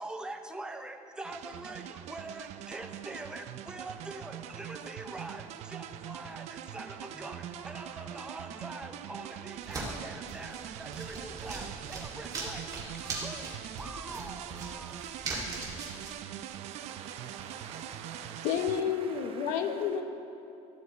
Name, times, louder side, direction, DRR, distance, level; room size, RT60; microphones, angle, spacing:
voice 1, 0.0-12.7 12.9-15.1, right 2 dB, 5° right, 5 dB, 0.5 m, -44 dB
sound 1, 1.2-18.8, right 10 dB, 65° right, 0.4 m, -43 dB
sound 2, 9.5-16.1, right 3 dB, 30° right, 2.1 m, -40 dB
voice 2, 16.3-19.9, right 6 dB, 50° right, 4 dB, 0.8 m, -49 dB
voice 3, 18.4-20.0, left 8 dB, 85° left, 7 dB, 0.8 m, -30 dB
13.5 x 6.6 x 4.1 m, 2.8 s
cardioid pair, 150°, 12 cm